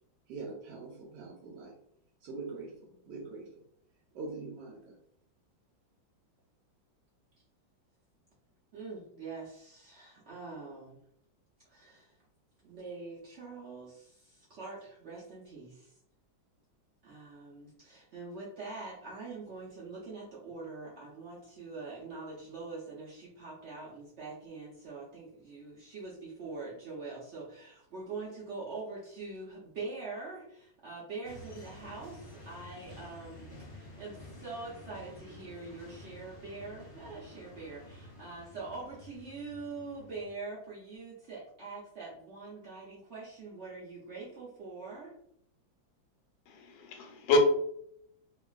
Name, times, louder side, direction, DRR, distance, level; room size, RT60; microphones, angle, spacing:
voice 1, 0.3-1.7 2.2-3.5 4.1-5.0, right 3 dB, 75° right, 0 dB, 1.1 m, -43 dB
voice 2, 8.7-11.0 11.7-12.2 12.6-15.9 17.0-45.1, right 3 dB, 90° right, -6 dB, 0.6 m, -44 dB
sound 1, 31.2-40.3, left 1 dB, 55° left, 0.9 m, -51 dB
voice 3, 46.5-47.4, left 2 dB, 85° left, 4 dB, 1.4 m, -28 dB
2.9 x 2.4 x 2.3 m, 0.71 s
omnidirectional pair, 2.1 m